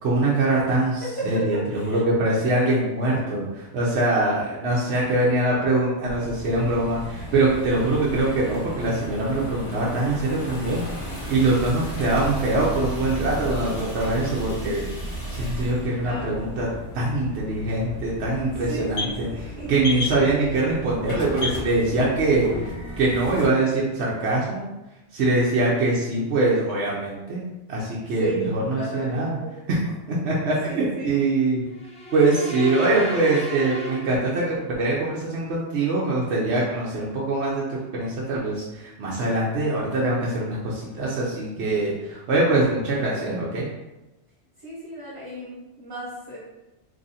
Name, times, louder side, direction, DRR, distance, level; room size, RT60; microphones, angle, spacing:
voice 1, 0.0-10.8 11.3-14.9 15.3-16.7 16.9-19.3 19.7-22.7 23.0-24.7 25.1-29.4 29.7-29.8 30.1-31.6 32.1-43.7, right 2 dB, 70° right, -5 dB, 0.9 m, -23 dB
voice 2, 1.0-2.0 16.0-16.4 18.7-19.7 28.2-29.5 30.4-31.1 44.6-46.4, right 2 dB, 30° right, -9 dB, 1.1 m, -34 dB
sound 1, 6.0-23.5, equal, 30° left, 0.8 m, -35 dB
sound 2, 16.9-22.4, left 2 dB, 75° left, 1.1 m, -36 dB
sound 3, 31.7-34.8, right 2 dB, 10° left, 0.5 m, -35 dB
3.0 x 2.5 x 4.0 m, 1.0 s
omnidirectional pair, 1.2 m